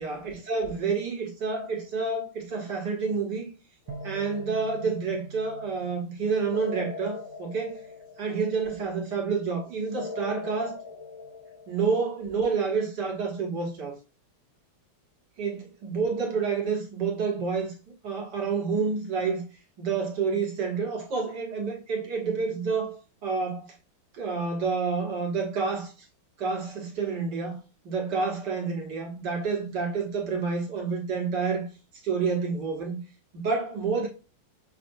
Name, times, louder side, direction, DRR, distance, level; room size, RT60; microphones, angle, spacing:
voice 1, 0.0-3.5 4.0-7.8 8.2-10.8 11.7-14.0 15.4-19.4 19.8-23.7 24.1-25.9 26.4-27.6 27.8-31.7 32.0-33.0 33.3-34.1, right 5 dB, 55° right, 1.7 m, -29 dB
sound 1, 3.9-5.2 6.5-8.7 9.9-12.1, left 4 dB, 75° left, 3.5 m, -41 dB
sound 2, 3.9-7.9, right 4 dB, 85° right, 1.5 m, -45 dB
6.5 x 2.7 x 2.6 m
omnidirectional pair, 2.3 m